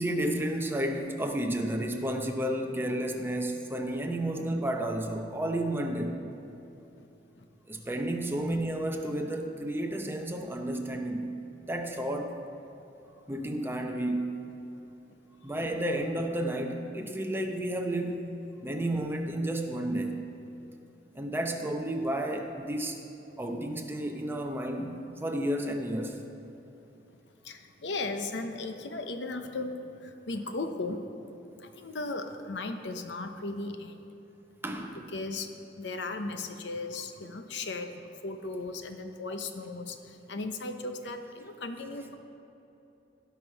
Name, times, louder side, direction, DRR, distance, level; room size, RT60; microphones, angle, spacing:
voice 1, 0.0-6.2 7.7-12.4 13.3-14.5 15.4-18.3 18.6-20.3 21.1-23.0 23.4-26.2 34.6-35.1, right 1 dB, 15° right, 3 dB, 0.8 m, -32 dB
voice 2, 27.4-31.0 31.6-34.1 35.1-42.1, left 3 dB, 75° left, 7 dB, 0.8 m, -37 dB
17.0 x 5.9 x 4.6 m, 2.9 s
head